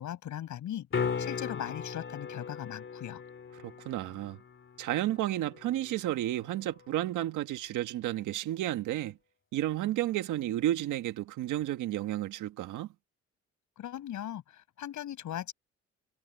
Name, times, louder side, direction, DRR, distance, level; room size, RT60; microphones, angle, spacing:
voice 1, 0.0-3.2 13.8-15.5, left 11 dB, 75° left, 7.2 m, -39 dB
sound 1, 0.9-6.9 11.6-11.7, left 6 dB, 40° left, 3.3 m, -38 dB
voice 2, 3.6-4.4 4.8-9.2 9.5-12.9, right 14 dB, 90° right, 1.6 m, -32 dB
cardioid pair, 90°, 30 cm